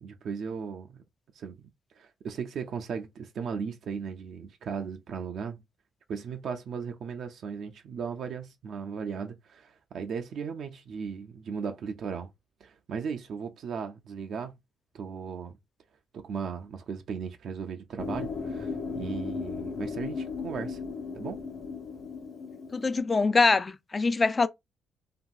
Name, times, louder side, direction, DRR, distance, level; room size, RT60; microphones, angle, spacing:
voice 1, 0.0-1.0 1.3-1.6 2.0-5.6 6.1-12.3 12.6-14.6 14.9-15.6 16.1-20.8 21.1-21.4, right 6 dB, 65° right, 0.4 m, -36 dB
sound 1, 18.0-23.0, left 4 dB, 70° left, 0.8 m, -36 dB
voice 2, 22.7-24.5, left 4 dB, 30° left, 0.3 m, -24 dB
2.9 x 2.6 x 2.3 m
cardioid pair, 90°, 0 cm